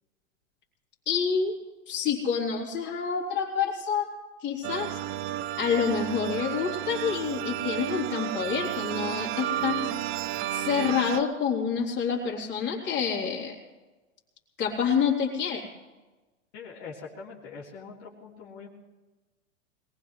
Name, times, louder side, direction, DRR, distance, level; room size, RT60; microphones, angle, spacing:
voice 1, 1.1-1.6 1.9-4.1 4.4-5.0 5.6-9.9 10.5-13.6 14.6-15.7, left 6 dB, 25° left, -2 dB, 3.6 m, -28 dB
sound 1, 4.6-11.2, right 12 dB, 35° right, 0.6 m, -32 dB
voice 2, 16.5-18.7, left 5 dB, 45° left, -5 dB, 3.3 m, -43 dB
22.0 x 20.0 x 3.2 m, 1.2 s
hypercardioid pair, 120°, 39 cm